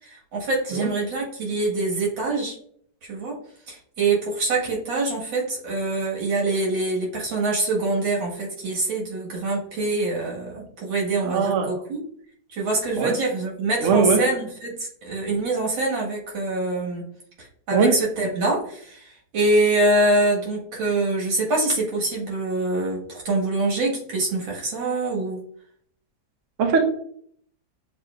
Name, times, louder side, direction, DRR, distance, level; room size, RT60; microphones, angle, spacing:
voice 1, 0.0-2.6 3.0-3.4 3.7-12.0 12.5-17.1 17.4-25.4, right 2 dB, 80° right, -3 dB, 2.4 m, -25 dB
voice 2, 11.2-11.7 13.0-13.1 13.8-14.2 17.7-17.9 26.6-26.8, right 5 dB, 60° right, 5 dB, 0.8 m, -20 dB
7.5 x 2.9 x 2.4 m, 0.62 s
omnidirectional pair, 2.1 m